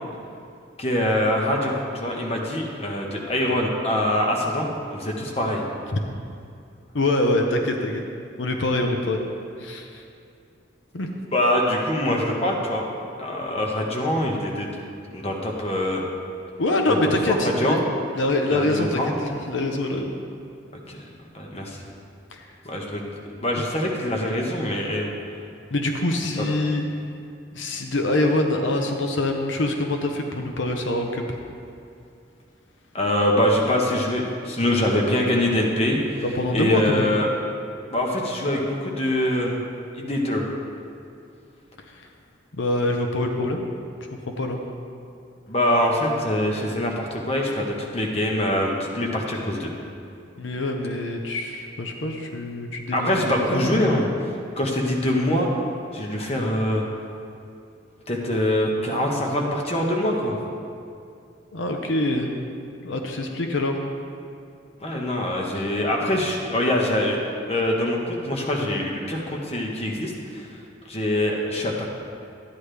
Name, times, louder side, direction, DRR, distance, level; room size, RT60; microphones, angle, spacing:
voice 1, 0.8-5.6 11.3-12.8 13.2-14.7 15.1-16.0 16.9-17.0 17.3-17.8 18.5-19.1 20.9-21.0 21.3-21.8 22.6-23.1 23.3-25.1 26.4-26.5 32.9-36.2 36.5-37.3 37.9-39.6 39.9-40.5 45.5-49.7 52.9-54.1 54.6-55.5 55.9-56.8 58.1-60.4 64.8-67.2 67.5-70.5 70.9-71.9, left 1 dB, 30° left, -1 dB, 1.2 m, -24 dB
voice 2, 6.9-8.0 8.4-9.3 9.6-10.0 10.9-11.1 16.6-17.8 18.1-20.1 22.3-22.5 25.7-26.8 27.5-31.2 36.2-37.1 41.9-42.1 42.5-43.7 44.3-44.6 50.4-54.0 61.5-62.4 62.8-63.8 65.5-65.7, left 1 dB, 80° left, 3 dB, 0.8 m, -25 dB
12.5 x 9.6 x 3.4 m, 2.5 s
head